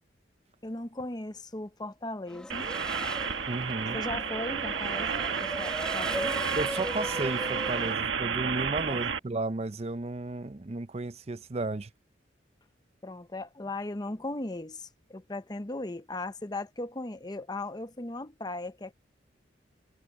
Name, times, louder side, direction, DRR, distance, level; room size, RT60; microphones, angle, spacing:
voice 1, 0.6-2.7 3.9-6.4 8.9-9.0 13.0-18.9, left 2 dB, 20° left, 0.8 m, -37 dB
Race car auto racing / Accelerating revving vroom, 2.3-7.9, equal, 5° left, 1.1 m, -38 dB
sound 1, 2.5-9.2, right 6 dB, 85° right, 1.4 m, -31 dB
voice 2, 3.5-4.0 6.6-11.9, right 2 dB, 35° right, 0.6 m, -33 dB
head